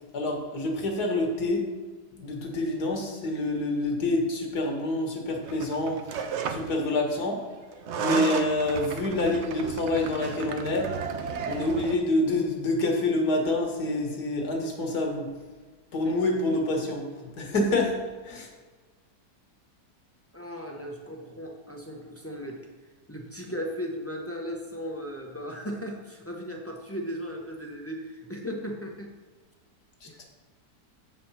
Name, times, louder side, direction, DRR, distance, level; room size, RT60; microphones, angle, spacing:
voice 1, 0.1-1.6 2.1-7.5 8.0-10.9 11.4-15.3 15.9-17.1 17.4-18.0 18.2-18.5 30.0-30.2, left 2 dB, 70° left, 2 dB, 1.9 m, -27 dB
sound 1, 5.4-6.8 7.7-12.0, right 6 dB, 75° right, 0.6 m, -33 dB
voice 2, 20.3-22.6 23.1-29.1 30.0-30.2, equal, 15° left, 0 dB, 0.4 m, -36 dB
7.7 x 5.1 x 5.6 m, 1.4 s
omnidirectional pair, 1.8 m